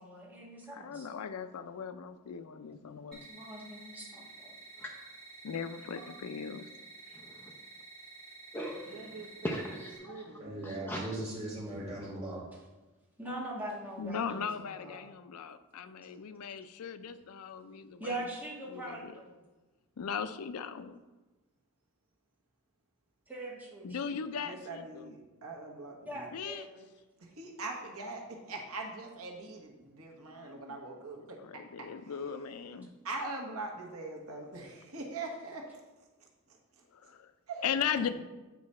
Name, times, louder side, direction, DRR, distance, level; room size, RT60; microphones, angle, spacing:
voice 1, 0.0-1.1 3.1-4.5 7.1-7.2 13.2-15.1 18.0-19.3 23.3-24.0 26.0-26.8 37.9-38.1, right 1 dB, 10° right, -4 dB, 1.5 m, -42 dB
voice 2, 0.7-3.3 5.4-6.7 14.0-18.2 18.7-19.1 20.0-21.0 23.8-25.1 26.3-26.7 30.3-30.8 31.4-32.9 36.9-37.3 37.6-38.1, left 7 dB, 85° left, 12 dB, 0.4 m, -38 dB
sound 1, 3.1-10.0, right 3 dB, 45° right, 2.3 m, -51 dB
voice 3, 7.1-7.5 8.5-11.2, equal, 10° left, -1 dB, 0.7 m, -41 dB
voice 4, 8.9-9.6 10.0-11.1 24.3-26.3 27.2-32.1 33.0-37.1 37.5-37.8, right 2 dB, 75° right, 1 dB, 1.2 m, -43 dB
voice 5, 10.4-12.4, right 1 dB, 30° right, -6 dB, 2.3 m, -39 dB
8.4 x 4.8 x 4.2 m, 1.2 s
head